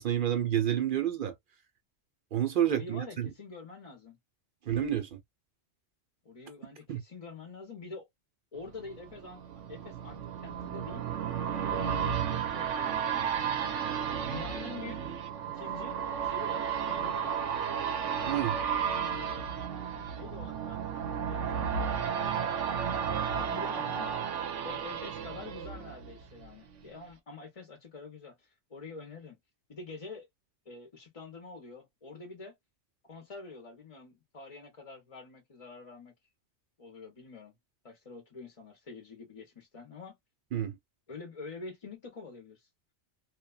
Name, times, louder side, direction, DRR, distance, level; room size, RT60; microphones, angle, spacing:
voice 1, 0.0-1.3 2.3-3.3 4.6-5.2 6.9-7.0 18.2-18.6 40.5-40.8, right 10 dB, 60° right, 0.6 m, -29 dB
voice 2, 2.7-4.2 6.2-8.1 8.5-9.4 9.7-11.0 11.5-13.3 14.2-15.0 15.5-17.6 18.8-19.5 20.1-22.0 23.3-29.4 29.7-30.3 30.7-32.6 33.0-36.1 36.8-37.5 37.8-40.1 41.1-42.7, left 4 dB, 35° left, 0.6 m, -46 dB
sound 1, 8.7-26.5 26.9-27.0, right 7 dB, 85° right, 1.0 m, -33 dB
2.9 x 2.2 x 2.2 m
omnidirectional pair, 1.2 m